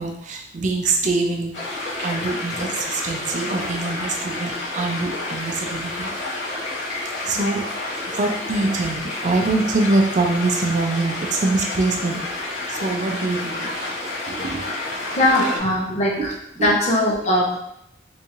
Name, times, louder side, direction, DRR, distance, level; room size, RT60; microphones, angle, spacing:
voice 1, 0.0-6.1 7.2-7.6 8.1-12.2 12.7-13.7 14.2-14.7 16.2-16.3 16.6-16.7, right 3 dB, 40° right, 2 dB, 0.4 m, -24 dB
sound 1, 1.5-15.6, left 2 dB, 65° left, 1.4 m, -30 dB
voice 2, 7.3-7.6 15.1-16.3 16.6-17.6, left 1 dB, 35° left, -2 dB, 0.7 m, -20 dB
3.5 x 2.8 x 2.9 m, 0.76 s
head